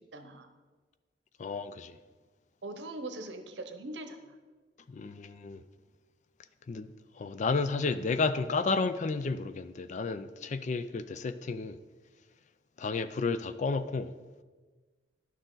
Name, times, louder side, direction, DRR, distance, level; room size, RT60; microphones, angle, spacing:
voice 1, 0.1-0.5 2.6-4.3, right 2 dB, 80° right, 0.9 m, -41 dB
voice 2, 1.4-2.0 4.9-5.6 6.7-6.9 7.2-11.8 12.8-14.1, left 4 dB, 45° left, 0.4 m, -32 dB
11.0 x 6.5 x 3.9 m
head